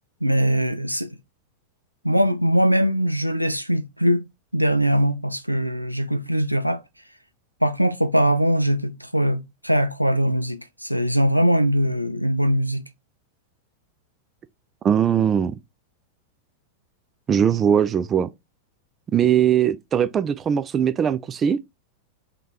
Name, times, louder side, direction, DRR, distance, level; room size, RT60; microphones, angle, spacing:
voice 1, 0.2-1.1 2.0-4.2 4.5-6.8 7.6-12.8, equal, 90° right, 0.4 m, -21 dB
voice 2, 14.8-15.5 17.3-18.3 19.1-21.6, right 8 dB, 25° right, 0.3 m, -20 dB
3.7 x 3.6 x 2.9 m
figure-of-eight pair, 90°, 0 cm